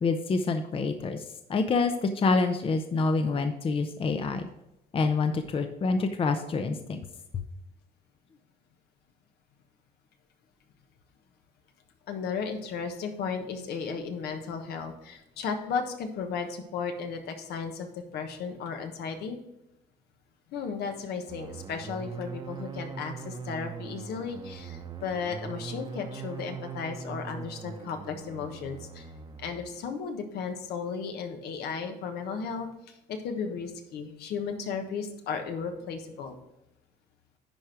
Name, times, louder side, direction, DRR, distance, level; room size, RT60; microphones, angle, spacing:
voice 1, 0.0-1.2 1.5-4.5 4.9-7.0, left 4 dB, 35° left, 7 dB, 0.7 m, -27 dB
voice 2, 12.1-19.4 20.5-29.1 29.4-36.4, left 5 dB, 75° left, 5 dB, 1.3 m, -35 dB
sound 1, 21.3-29.8, right 5 dB, 30° right, 1.0 m, -41 dB
10.5 x 4.5 x 4.8 m, 0.87 s
cardioid pair, 110°, 17 cm